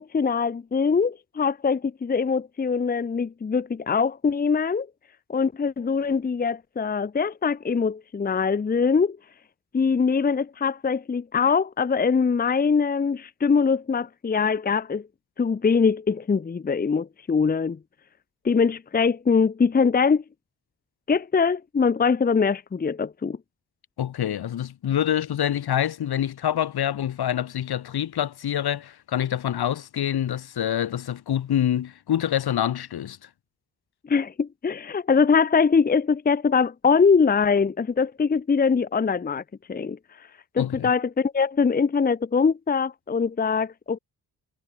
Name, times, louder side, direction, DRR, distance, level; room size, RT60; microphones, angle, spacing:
voice 1, 0.0-4.9 5.3-9.2 9.7-15.0 15.4-17.8 18.4-20.2 21.1-23.4 34.1-39.4 39.7-40.0 40.5-44.0, left 5 dB, 25° left, 0.8 m, -22 dB
voice 2, 24.0-33.3 40.6-40.9, left 10 dB, 75° left, 5.5 m, -26 dB
wide cardioid pair, 135°, 38 cm